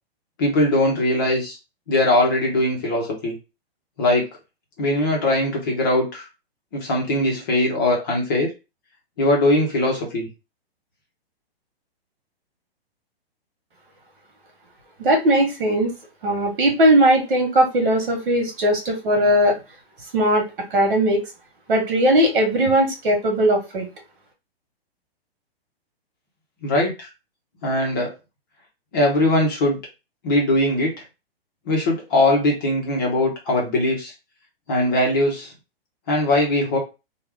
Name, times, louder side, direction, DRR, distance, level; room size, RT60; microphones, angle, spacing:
voice 1, 0.4-1.6 1.9-3.3 4.0-4.3 4.8-6.3 6.7-8.5 9.2-10.3 26.6-27.1 27.6-28.1 28.9-29.8 30.2-30.9 31.7-34.1 34.7-35.5 36.1-36.8, left 1 dB, 20° left, -1 dB, 0.8 m, -20 dB
voice 2, 15.0-15.9 16.2-19.5 20.1-20.4 20.7-21.2 21.7-23.9, right 1 dB, 55° right, 2 dB, 1.6 m, -18 dB
3.0 x 2.3 x 3.6 m, 0.27 s
hypercardioid pair, 180°, 31 cm